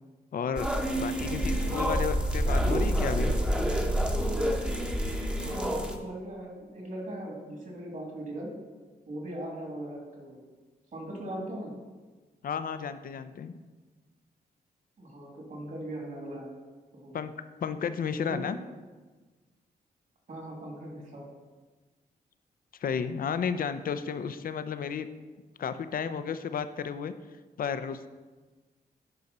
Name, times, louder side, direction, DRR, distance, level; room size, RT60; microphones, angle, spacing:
voice 1, 0.3-0.7 1.0-3.3 12.4-13.6 17.1-17.3 17.6-18.6 22.8-25.1 25.6-27.1 27.6-28.1, left 7 dB, 60° left, 11 dB, 0.6 m, -32 dB
sound 1, 0.6-6.0, equal, 5° right, 0.9 m, -28 dB
voice 2, 5.4-8.5 9.1-10.4 10.9-11.7 15.0-16.5 16.9-17.2 18.0-18.4 20.3-21.2, right 1 dB, 50° right, -1 dB, 2.6 m, -39 dB
10.5 x 4.9 x 4.2 m, 1.3 s
cardioid pair, 75°, 17 cm